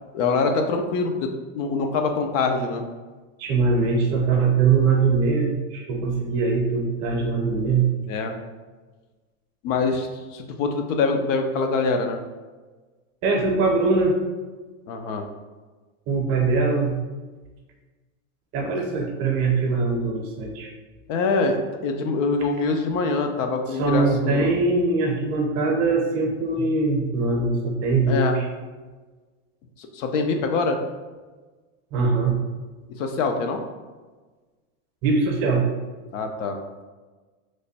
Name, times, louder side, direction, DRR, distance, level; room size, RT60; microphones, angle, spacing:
voice 1, 0.1-2.8 8.1-8.3 9.6-12.2 14.9-15.2 18.6-18.7 21.1-24.5 28.1-28.4 29.8-30.8 33.0-33.6 36.1-36.8, left 4 dB, 65° left, 5 dB, 0.6 m, -24 dB
voice 2, 3.4-7.9 13.2-14.2 16.1-17.0 18.5-20.7 23.8-28.5 31.9-32.4 35.0-35.7, right 4 dB, 40° right, 1 dB, 0.6 m, -22 dB
3.2 x 2.1 x 4.0 m, 1.3 s
supercardioid pair, 145°, 41 cm